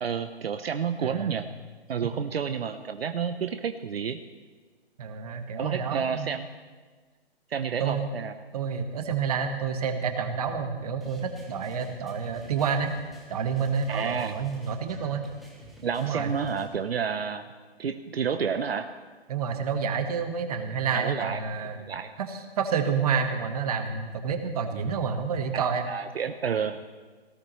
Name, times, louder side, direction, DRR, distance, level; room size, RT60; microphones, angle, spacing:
voice 1, 0.0-1.5 1.9-4.2 5.6-6.5 7.5-8.3 13.9-14.3 15.8-17.5 17.8-18.9 20.9-21.4 21.9-22.1 25.9-26.9, right 7 dB, 70° right, 9 dB, 0.8 m, -30 dB
voice 2, 1.0-1.4 5.0-6.3 7.8-8.1 8.5-12.9 13.3-15.2 16.0-16.3 19.3-21.8 22.2-25.9, right 6 dB, 35° right, 6 dB, 1.5 m, -29 dB
sound 1, 11.0-16.7, right 1 dB, ahead, 0.7 m, -51 dB
18.0 x 16.0 x 3.2 m, 1.4 s
hypercardioid pair, 155°, 31 cm